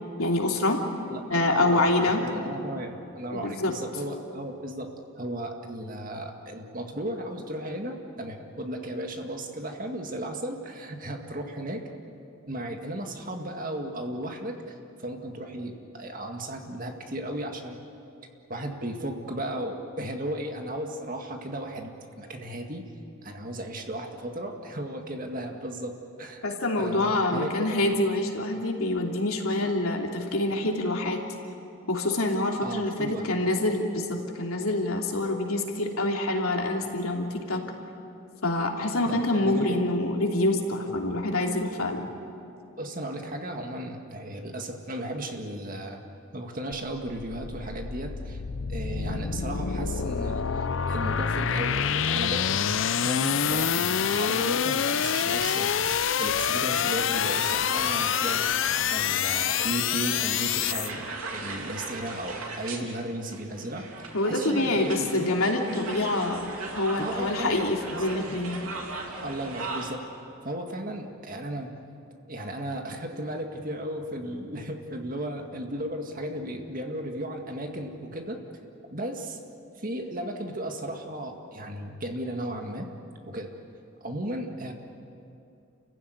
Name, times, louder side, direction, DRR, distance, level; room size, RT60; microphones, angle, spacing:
voice 1, 0.2-0.8 1.3-2.2 3.3-3.7 26.4-31.2 31.9-37.6 38.4-42.1 64.1-68.6, left 2 dB, 85° left, 1 dB, 3.0 m, -26 dB
voice 2, 1.1-11.8 12.5-17.8 18.5-22.8 23.2-27.8 32.6-33.3 39.0-39.8 42.8-46.0 46.3-48.4 48.7-61.0 61.3-63.9 64.2-65.4 67.0-68.3 69.2-70.1 70.4-71.8 72.3-78.4 78.9-79.4 79.8-82.9 83.3-83.5 84.0-84.7, right 1 dB, 40° right, 3 dB, 2.0 m, -35 dB
sound 1, 46.7-60.9, left 7 dB, 65° left, 0.6 m, -27 dB
sound 2, 57.5-70.0, right 3 dB, 85° right, 3.1 m, -39 dB
29.5 x 15.5 x 9.6 m, 2.7 s
head